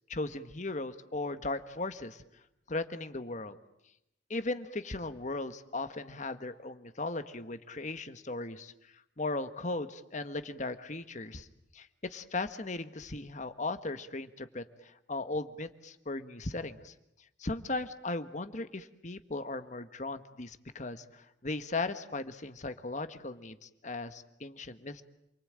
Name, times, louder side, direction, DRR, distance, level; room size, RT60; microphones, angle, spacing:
voice 1, 0.1-2.2 2.7-3.6 4.3-8.7 9.2-11.5 11.7-16.9 17.4-25.0, left 2 dB, 40° left, 10 dB, 1.4 m, -37 dB
28.5 x 23.5 x 8.9 m, 0.83 s
head